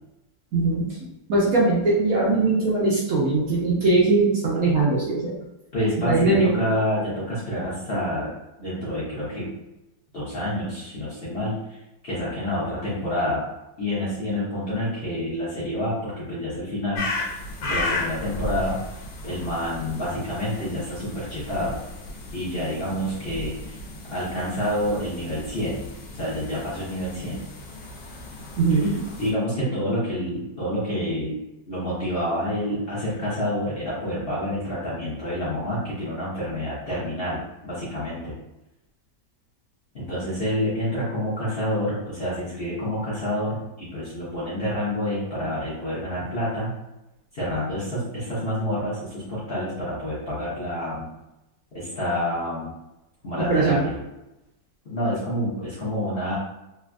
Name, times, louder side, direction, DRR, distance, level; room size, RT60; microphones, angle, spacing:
voice 1, 0.5-0.9 1.3-5.3 6.0-6.6 28.6-29.1 53.5-53.8, right 3 dB, 60° right, -5 dB, 1.1 m, -20 dB
voice 2, 5.7-8.3 8.6-9.5 10.1-11.6 12.0-13.5 13.8-17.1 17.6-18.8 19.2-21.8 22.3-23.8 24.1-25.9 26.1-27.5 29.2-31.4 31.7-38.4 39.9-46.7 47.3-51.1 51.7-52.7 53.2-54.0 54.8-56.4, left 1 dB, 40° left, -9 dB, 1.0 m, -28 dB
sound 1, 16.9-29.3, left 2 dB, 80° left, 1.3 m, -35 dB
3.4 x 2.7 x 2.3 m, 0.94 s
omnidirectional pair, 1.9 m